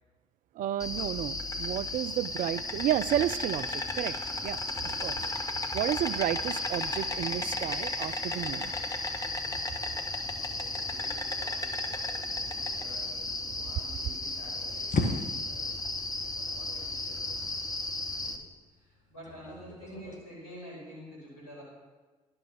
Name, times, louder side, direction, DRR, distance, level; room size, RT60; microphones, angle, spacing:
voice 1, 0.5-5.3 5.7-8.7, right 12 dB, 50° right, 18 dB, 0.4 m, -32 dB
Insect, 0.8-18.4, left 2 dB, 20° left, 1.3 m, -34 dB
voice 2, 10.4-15.0 15.4-17.5 18.1-21.6, equal, 85° left, -5 dB, 3.9 m, -50 dB
sound 1, 14.2-20.2, left 3 dB, 45° left, 1.5 m, -38 dB
11.5 x 6.2 x 6.2 m, 1.3 s
figure-of-eight pair, 50°, 17 cm